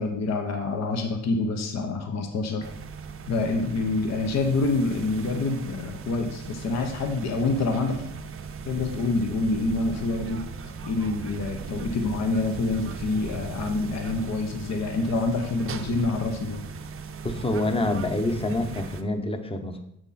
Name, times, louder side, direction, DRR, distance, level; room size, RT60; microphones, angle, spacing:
voice 1, 0.0-2.6 3.3-8.1 8.6-10.4 10.8-16.7, left 3 dB, 60° left, 4 dB, 1.0 m, -27 dB
sound 1, 2.6-19.0, right 5 dB, 45° right, 0.7 m, -38 dB
voice 2, 17.2-19.8, left 2 dB, 20° left, 7 dB, 0.9 m, -27 dB
7.3 x 6.2 x 4.2 m, 0.79 s
cardioid pair, 90°, 30 cm